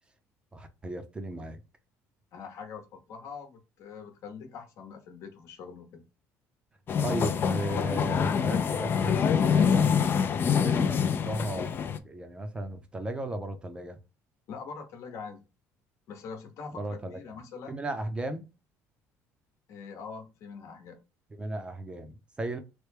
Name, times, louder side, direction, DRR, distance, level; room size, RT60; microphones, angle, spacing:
voice 1, 0.5-1.6 7.0-14.0 16.7-17.4 17.7-18.5 21.4-22.6, right 1 dB, 15° right, 0.5 m, -36 dB
voice 2, 2.3-6.0 14.5-15.4 16.1-17.8 19.7-21.0, left 5 dB, 60° left, 0.9 m, -43 dB
sound 1, 6.9-12.0, left 7 dB, 35° left, 0.4 m, -25 dB
3.2 x 2.2 x 3.3 m
cardioid pair, 130°, 6 cm